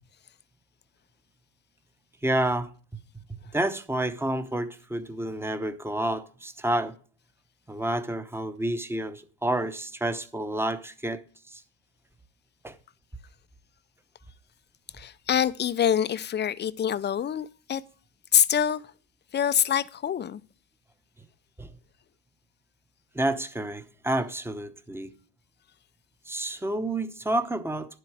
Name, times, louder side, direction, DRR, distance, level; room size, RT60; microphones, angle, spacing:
voice 1, 2.2-2.7 3.3-6.9 7.7-11.2 11.5-11.6 12.6-12.8 21.6-21.7 23.1-25.1 26.3-28.0, right 1 dB, 5° right, 0.9 m, -29 dB
voice 2, 15.0-17.8 18.3-18.8 19.3-20.4, left 9 dB, 25° left, 0.5 m, -25 dB
11.0 x 7.7 x 4.8 m
supercardioid pair, 100°, 45 cm